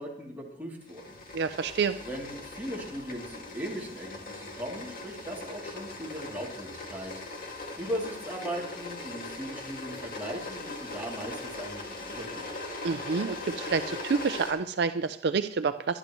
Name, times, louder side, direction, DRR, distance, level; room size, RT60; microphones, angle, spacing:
voice 1, 0.0-1.2 2.0-7.4 7.8-12.5, equal, 10° right, -4 dB, 2.8 m, -38 dB
sound 1, 0.9-14.5, left 2 dB, 50° left, 2.1 m, -40 dB
voice 2, 1.3-2.0 12.8-16.0, right 5 dB, 65° right, 10 dB, 0.4 m, -28 dB
22.5 x 10.5 x 3.1 m, 0.75 s
head